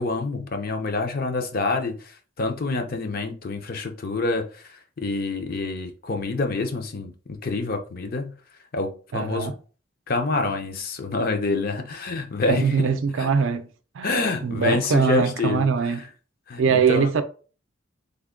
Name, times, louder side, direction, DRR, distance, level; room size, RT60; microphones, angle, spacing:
voice 1, 0.0-8.4 8.7-9.5 10.1-12.8 13.2-13.3 14.0-15.9 16.5-16.6 16.9-17.1, left 3 dB, 45° left, 0.5 m, -27 dB
voice 2, 9.1-9.5 12.5-13.7 13.9-16.0 16.6-17.2, right 6 dB, 70° right, 0.4 m, -22 dB
3.4 x 2.1 x 3.6 m
head